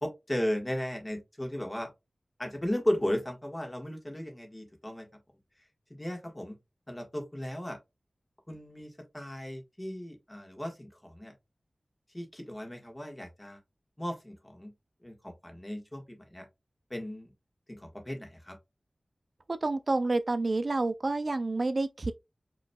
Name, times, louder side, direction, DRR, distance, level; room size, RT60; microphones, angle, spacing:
voice 1, 0.0-1.9 2.4-5.1 5.9-6.6 6.9-7.8 8.5-11.3 12.1-13.6 14.0-14.7 15.0-16.5 16.9-17.3 17.7-18.6, left 1 dB, 20° left, 1.4 m, -35 dB
voice 2, 19.6-22.1, right 2 dB, 55° right, 0.3 m, -29 dB
5.3 x 3.0 x 2.2 m
wide cardioid pair, 80°, 0 cm